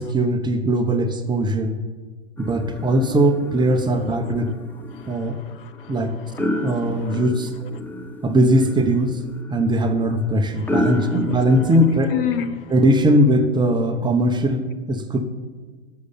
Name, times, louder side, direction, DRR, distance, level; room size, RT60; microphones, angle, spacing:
voice 1, 0.0-1.8 2.4-4.6 5.1-5.4 5.9-6.2 6.6-7.5 8.2-9.2 9.5-12.1 12.7-15.2, right 1 dB, 15° right, 1.2 m, -20 dB
sound 1, 2.4-12.0, left 1 dB, 5° left, 0.8 m, -30 dB
voice 2, 3.9-4.3 4.9-7.3 7.5-7.7 10.5-12.7, left 9 dB, 55° left, 0.9 m, -33 dB
11.5 x 7.1 x 8.5 m
hypercardioid pair, 105°, 33 cm